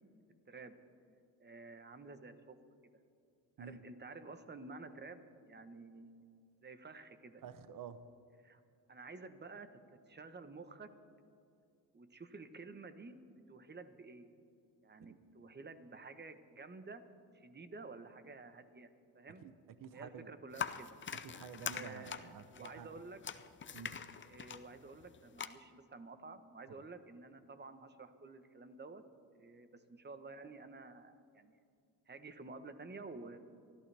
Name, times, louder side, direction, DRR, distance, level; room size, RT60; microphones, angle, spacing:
voice 1, 0.5-0.8 1.4-2.6 3.6-5.2 5.5-6.2 6.6-7.4 8.4-8.6 8.9-9.7 10.1-10.9 11.9-13.2 13.5-14.3 14.8-17.0 17.3-18.9 19.1-19.4 19.9-21.0 21.7-23.2 24.2-29.0 29.3-31.6 32.1-33.4, right 3 dB, 25° right, 10 dB, 1.1 m, -51 dB
voice 2, 7.4-8.1 15.0-15.2 19.4-19.5 19.8-20.3 21.2-23.0 23.7-24.0, right 7 dB, 50° right, 12 dB, 0.8 m, -50 dB
sound 1, 20.5-25.5, left 7 dB, 30° left, 0.6 m, -44 dB
23.5 x 14.0 x 3.5 m, 2.4 s
cardioid pair, 95°, 42 cm